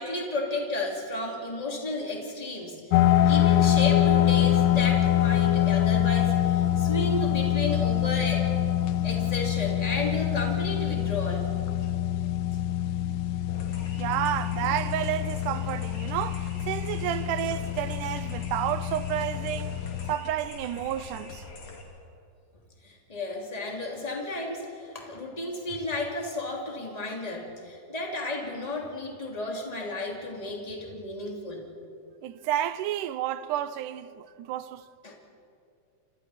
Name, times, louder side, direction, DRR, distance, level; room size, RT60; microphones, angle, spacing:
voice 1, 0.0-2.8 3.2-8.5 9.0-11.5 11.8-11.9 22.8-31.7 35.0-35.1, left 2 dB, 10° left, 2.7 m, -33 dB
sound 1, 2.9-20.1, left 12 dB, 90° left, 2.2 m, -25 dB
sound 2, 13.5-21.8, left 3 dB, 50° left, 3.2 m, -43 dB
voice 2, 14.0-19.8 20.1-21.4 32.2-34.8, right 12 dB, 90° right, 2.3 m, -30 dB
28.5 x 26.5 x 4.3 m
omnidirectional pair, 3.5 m